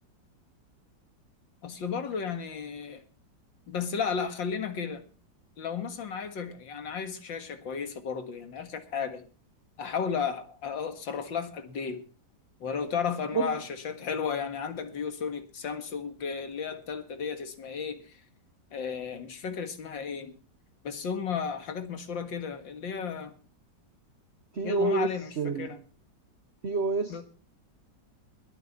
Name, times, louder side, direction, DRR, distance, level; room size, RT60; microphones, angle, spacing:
voice 1, 1.6-3.0 3.7-5.0 5.6-9.2 9.8-12.0 12.6-18.2 18.7-20.3 20.8-23.3 24.6-25.8 27.1-27.2, left 6 dB, 85° left, 2.5 m, -34 dB
voice 2, 24.5-25.7 26.6-27.2, right 3 dB, 40° right, 1.1 m, -28 dB
22.0 x 9.0 x 4.1 m
omnidirectional pair, 2.0 m